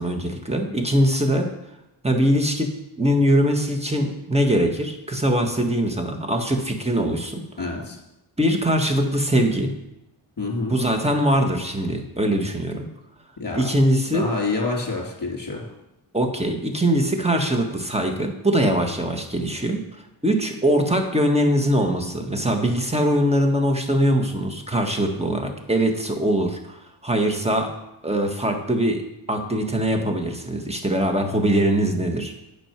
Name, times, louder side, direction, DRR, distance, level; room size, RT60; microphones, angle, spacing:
voice 1, 0.0-1.5 2.0-2.7 3.0-7.4 8.4-9.7 10.7-12.9 13.5-14.3 16.1-19.8 20.2-27.7 28.0-29.0 29.3-32.3, equal, 15° right, 3 dB, 1.5 m, -22 dB
voice 2, 7.6-8.0 10.4-10.8 13.4-13.7 14.0-15.7, left 3 dB, 40° left, -1 dB, 3.2 m, -27 dB
9.1 x 6.2 x 5.9 m, 0.89 s
cardioid pair, 65°, 49 cm